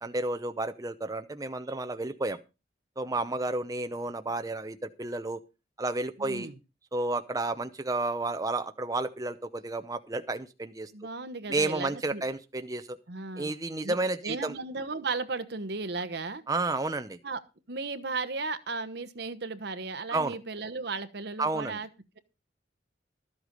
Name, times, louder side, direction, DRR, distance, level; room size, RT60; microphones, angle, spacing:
voice 1, 0.0-2.4 3.0-5.4 5.8-6.5 6.9-10.9 11.5-13.0 13.4-14.5 16.5-17.2 20.1-20.3 21.4-21.8, right 2 dB, 20° right, 8 dB, 0.7 m, -31 dB
voice 2, 6.2-6.6 10.9-12.2 13.1-13.5 13.8-13.9 14.2-16.4 17.2-17.4 17.7-21.9, right 3 dB, 65° right, 13 dB, 1.1 m, -35 dB
13.0 x 8.1 x 5.2 m, 0.29 s
head